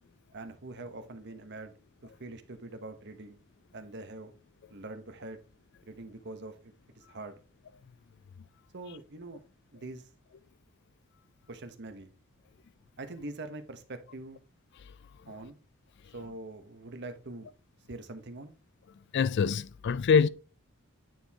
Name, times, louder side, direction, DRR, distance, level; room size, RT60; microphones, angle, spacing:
voice 1, 0.3-1.7 2.0-3.4 3.7-4.3 4.7-5.4 5.8-7.4 8.7-9.4 9.7-10.1 11.5-12.1 13.0-14.4 15.3-15.6 16.1-17.5 17.9-18.5, right 2 dB, 60° right, 1.1 m, -43 dB
voice 2, 19.1-20.3, left 6 dB, 60° left, 0.4 m, -24 dB
9.2 x 4.5 x 3.6 m
head